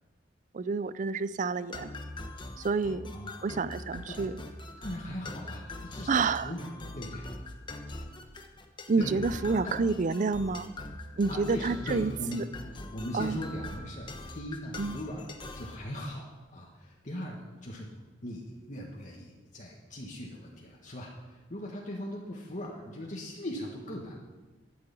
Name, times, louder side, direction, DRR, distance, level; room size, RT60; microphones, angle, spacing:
voice 1, 0.5-1.9 2.6-3.1 3.4-4.4 6.1-6.5 8.9-10.7 11.2-12.5 13.1-13.4 14.8-15.0, right 4 dB, 40° right, 16 dB, 0.4 m, -29 dB
sound 1, 1.7-15.8, left 2 dB, 25° left, 1.1 m, -42 dB
voice 2, 3.1-3.5 4.1-4.2 4.8-7.2 9.0-9.2 9.6-9.7 11.3-12.4 12.9-14.1 14.3-15.2 15.5-16.2 16.5-17.9 18.2-24.2, equal, 40° left, -2 dB, 1.5 m, -39 dB
12.0 x 6.7 x 8.4 m, 1.3 s
head